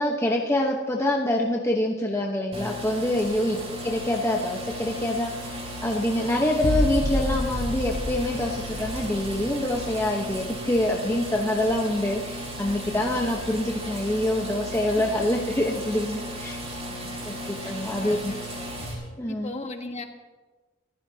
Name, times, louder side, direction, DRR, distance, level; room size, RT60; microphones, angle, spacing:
voice 1, 0.0-16.6 17.2-18.3 19.2-19.5, left 1 dB, 15° left, -1 dB, 1.1 m, -26 dB
sound 1, 2.5-18.9, equal, 30° right, 5.1 m, -35 dB
sound 2, 6.6-12.1 12.5-13.1, left 1 dB, 75° left, 1.0 m, -31 dB
voice 2, 12.8-13.1 14.9-15.0 16.8-18.9 19.3-20.0, left 2 dB, 30° left, 4 dB, 1.5 m, -40 dB
28.5 x 15.5 x 2.9 m, 1.3 s
head